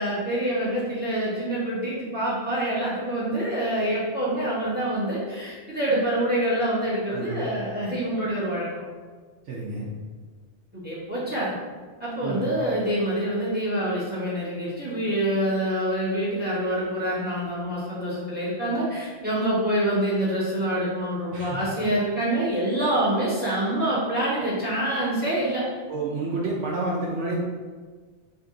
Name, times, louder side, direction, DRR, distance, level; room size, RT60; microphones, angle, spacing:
voice 1, 0.0-8.7 10.7-11.5 12.0-25.7, right 1 dB, 10° right, -8 dB, 1.2 m, -26 dB
voice 2, 7.1-7.5 9.4-9.9 12.2-12.5 21.3-21.6 25.9-27.4, right 2 dB, 75° right, -5 dB, 0.9 m, -29 dB
4.0 x 2.5 x 3.7 m, 1.5 s
omnidirectional pair, 1.2 m